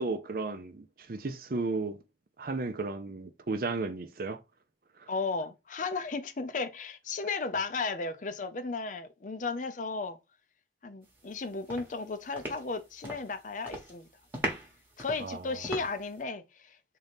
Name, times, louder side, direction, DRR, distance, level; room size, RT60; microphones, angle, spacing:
voice 1, 0.0-2.0 2.4-4.4 15.2-15.4, right 3 dB, 55° right, 0.6 m, -34 dB
voice 2, 5.1-10.2 10.8-14.1 15.0-16.8, left 4 dB, 45° left, 0.5 m, -34 dB
sound 1, 11.2-11.4 11.7-13.3 13.6-14.0 14.3-16.2, right 1 dB, 10° right, 1.1 m, -38 dB
3.8 x 2.7 x 3.5 m
head